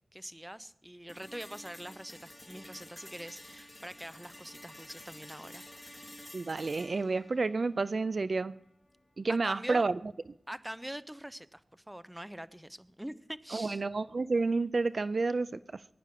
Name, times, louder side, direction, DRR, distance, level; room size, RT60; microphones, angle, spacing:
voice 1, 0.1-6.0 9.3-9.9 10.5-13.8, equal, 10° right, 15 dB, 0.8 m, -44 dB
sound 1, 1.1-9.1, left 1 dB, 15° left, 2.8 m, -51 dB
voice 2, 6.3-8.5 9.2-10.0 13.5-15.8, right 3 dB, 60° right, 16 dB, 0.5 m, -30 dB
22.0 x 10.0 x 6.0 m, 0.78 s
cardioid pair, 50°, 0 cm